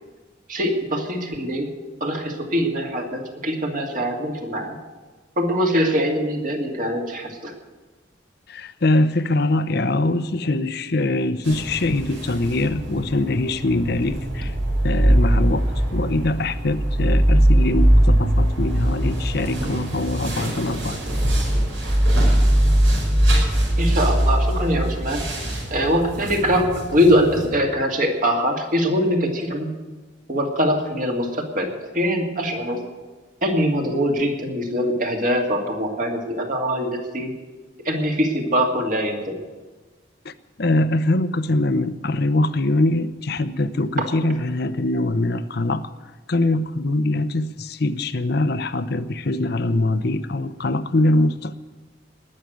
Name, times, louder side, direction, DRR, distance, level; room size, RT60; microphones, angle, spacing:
voice 1, 0.5-1.7 2.0-4.8 5.4-7.5 11.5-11.6 23.8-25.2 25.7-29.7 30.3-32.8 33.4-37.3 37.8-39.4, equal, 45° right, 1 dB, 2.4 m, -22 dB
voice 2, 8.5-14.5 14.8-21.0 40.2-40.3 40.6-45.9 46.3-51.5, left 2 dB, 60° left, 13 dB, 0.7 m, -23 dB
sound 1, 11.4-27.5, right 1 dB, 85° right, 5.5 m, -21 dB
19.5 x 6.6 x 9.3 m, 1.3 s
head